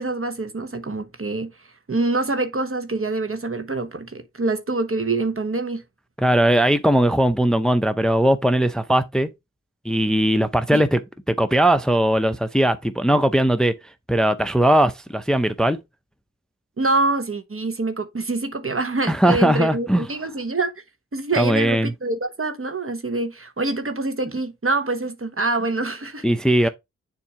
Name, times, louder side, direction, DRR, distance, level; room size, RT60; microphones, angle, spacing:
voice 1, 0.0-1.5 1.9-5.8 10.7-10.8 16.8-20.7 21.1-26.2 26.6-26.7, right 2 dB, 45° right, 1.1 m, -25 dB
voice 2, 6.2-9.3 9.8-11.0 11.3-13.7 14.1-15.8 19.1-20.1 21.4-21.9 26.2-26.7, right 1 dB, ahead, 0.6 m, -19 dB
7.1 x 2.8 x 4.8 m
cardioid pair, 40°, 31 cm